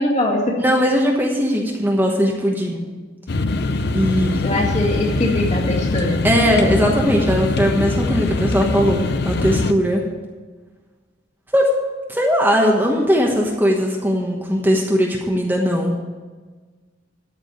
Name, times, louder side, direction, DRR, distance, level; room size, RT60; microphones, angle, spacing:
voice 1, 0.0-0.6 4.4-6.2, left 1 dB, 35° left, -1 dB, 2.3 m, -21 dB
voice 2, 0.6-2.8 3.9-4.4 6.2-10.0 11.5-11.7 12.1-15.9, equal, 10° right, -1 dB, 1.1 m, -19 dB
sound 1, 3.3-9.7, left 2 dB, 55° left, 0.6 m, -22 dB
13.5 x 5.0 x 9.0 m, 1.4 s
head